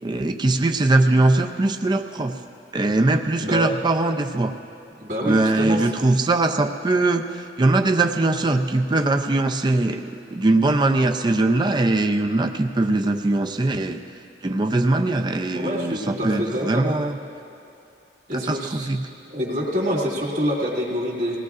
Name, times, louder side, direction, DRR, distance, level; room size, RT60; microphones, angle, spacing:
voice 1, 0.0-2.4 2.7-4.5 5.2-7.2 7.6-14.0 14.4-17.2 18.3-19.0, right 2 dB, 25° right, 6 dB, 0.4 m, -21 dB
voice 2, 5.0-5.8 15.5-16.9 18.3-18.9 19.3-21.4, equal, 45° right, -6 dB, 2.1 m, -26 dB
21.0 x 17.0 x 2.4 m, 2.8 s
head